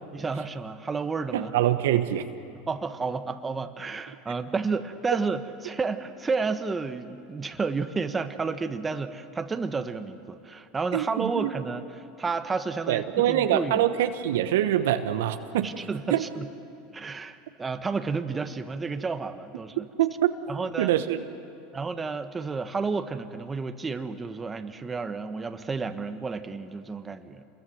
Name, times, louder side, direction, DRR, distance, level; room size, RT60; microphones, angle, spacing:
voice 1, 0.1-1.5 2.7-13.9 15.6-16.5 16.9-19.9 20.5-20.9 21.7-27.4, right 4 dB, 20° right, 9 dB, 1.3 m, -31 dB
voice 2, 1.3-2.3 10.9-11.5 12.9-15.7 16.1-16.2 20.0-20.3 20.8-21.3, right 12 dB, 75° right, 9 dB, 1.1 m, -24 dB
28.0 x 22.0 x 7.9 m, 2.8 s
hypercardioid pair, 90°, 0 cm